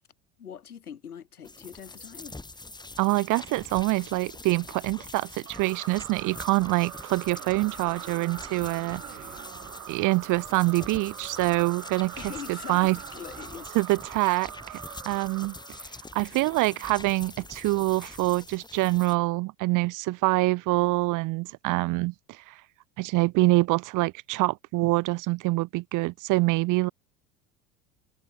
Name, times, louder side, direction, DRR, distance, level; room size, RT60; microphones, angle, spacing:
voice 1, 0.4-2.4 12.2-13.7, left 8 dB, 85° left, 7.9 m, -42 dB
sound 1, 1.4-19.2, left 2 dB, 10° left, 2.6 m, -45 dB
voice 2, 3.0-9.0 9.9-12.1 12.5-13.0 13.7-14.5 15.0-15.6 16.1-22.6 23.0-26.9, right 21 dB, 45° right, 0.7 m, -25 dB
sound 2, 5.5-16.2, right 12 dB, 80° right, 2.2 m, -43 dB
hypercardioid pair, 75°, 43 cm